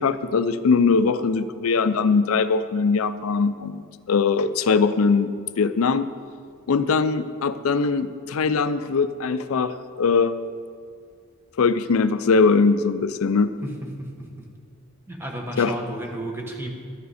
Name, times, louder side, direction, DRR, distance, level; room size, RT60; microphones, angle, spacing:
voice 1, 0.0-6.1 6.7-10.3 11.6-13.5 15.6-15.7, left 4 dB, 75° left, 13 dB, 0.5 m, -21 dB
voice 2, 13.6-14.5 15.1-16.7, right 1 dB, 10° right, 0 dB, 1.3 m, -33 dB
12.0 x 9.4 x 4.2 m, 2.1 s
head